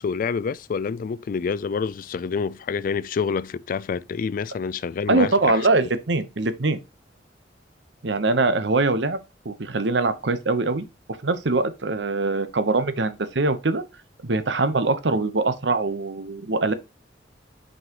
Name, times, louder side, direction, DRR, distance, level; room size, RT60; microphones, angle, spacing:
voice 1, 0.0-5.6, left 5 dB, 50° left, 0.3 m, -27 dB
voice 2, 5.1-6.8 8.0-9.2 9.4-10.8 11.2-13.8 14.2-16.7, right 3 dB, 75° right, 0.9 m, -23 dB
6.1 x 5.5 x 2.9 m
head